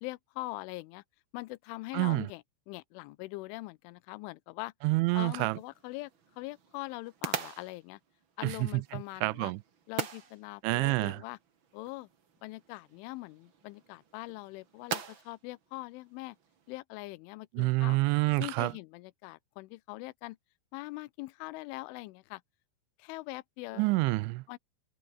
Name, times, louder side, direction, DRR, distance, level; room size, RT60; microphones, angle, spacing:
voice 1, 0.0-1.0 1.3-4.7 5.1-6.1 6.4-8.0 8.4-9.5 9.9-11.4 11.7-12.1 12.4-16.4 16.7-18.0 18.4-20.4 20.7-22.4 23.0-23.9 24.5-24.6, left 21 dB, 85° left, 3.2 m, -42 dB
voice 2, 1.9-2.3 4.8-5.6 8.4-9.6 10.6-11.2 17.5-18.7 23.8-24.4, right 23 dB, 85° right, 2.9 m, -28 dB
sound 1, 5.1-16.8, right 6 dB, 45° right, 1.5 m, -43 dB
omnidirectional pair, 5.5 m